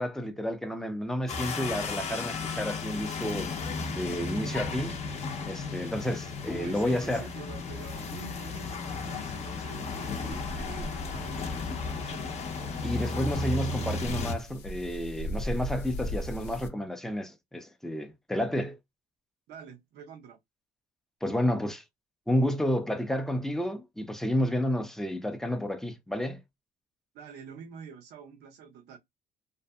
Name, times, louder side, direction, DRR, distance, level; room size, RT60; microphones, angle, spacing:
voice 1, 0.0-3.5 3.9-5.0 5.5-7.2 12.8-18.8 21.2-21.8 22.3-26.4, left 1 dB, ahead, 0.5 m, -30 dB
sound 1, 1.3-14.3, left 4 dB, 40° left, 0.7 m, -34 dB
voice 2, 6.5-12.3 19.5-20.4 27.1-29.0, right 6 dB, 80° right, 0.8 m, -47 dB
sound 2, 10.3-16.7, equal, 85° left, 0.7 m, -39 dB
2.6 x 2.5 x 2.2 m
cardioid pair, 110°, 17 cm